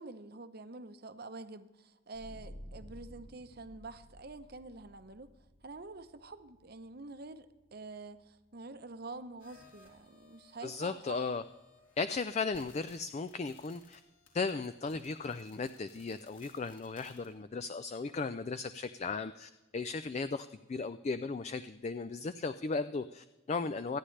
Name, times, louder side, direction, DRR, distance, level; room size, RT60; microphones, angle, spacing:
voice 1, 0.0-5.3 5.6-11.4, right 3 dB, 50° right, 10 dB, 0.8 m, -47 dB
sound 1, 2.1-13.4, equal, 85° left, 1.9 m, -56 dB
sound 2, 9.4-17.3, left 3 dB, 70° left, 3.9 m, -63 dB
voice 2, 10.6-11.4 12.0-14.0 14.3-24.0, left 4 dB, 35° left, 12 dB, 0.3 m, -36 dB
25.0 x 9.9 x 3.3 m, 1.1 s
head